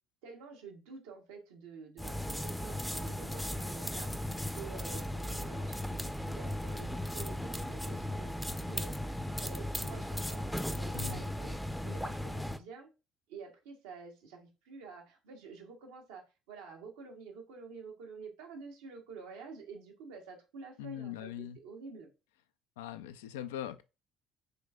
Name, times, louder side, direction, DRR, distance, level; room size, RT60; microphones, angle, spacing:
voice 1, 0.2-8.9 9.4-11.6 11.8-12.9 13.3-22.1, right 5 dB, 85° right, 1.0 m, -49 dB
sound 1, 2.0-12.6, left 1 dB, 5° left, 0.5 m, -37 dB
voice 2, 20.8-21.6 22.8-23.8, left 10 dB, 90° left, 0.3 m, -41 dB
5.1 x 3.2 x 2.3 m
hypercardioid pair, 70°, 0 cm